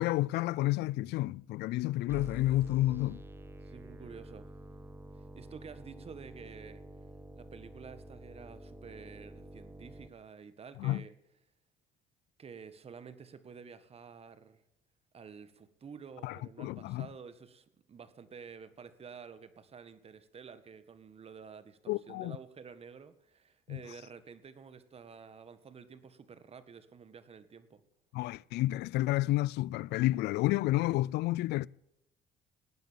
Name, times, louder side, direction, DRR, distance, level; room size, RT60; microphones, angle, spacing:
voice 1, 0.0-3.2 10.8-11.0 16.2-17.1 21.9-22.4 23.7-23.8 28.1-31.7, left 17 dB, 80° left, 0.5 m, -30 dB
sound 1, 2.1-10.1, right 1 dB, 15° right, 1.7 m, -48 dB
voice 2, 3.6-4.5 5.4-6.8 7.4-11.1 12.4-14.6 15.1-27.8, right 6 dB, 35° right, 1.7 m, -50 dB
18.5 x 9.3 x 7.4 m
cardioid pair, 110°, 17 cm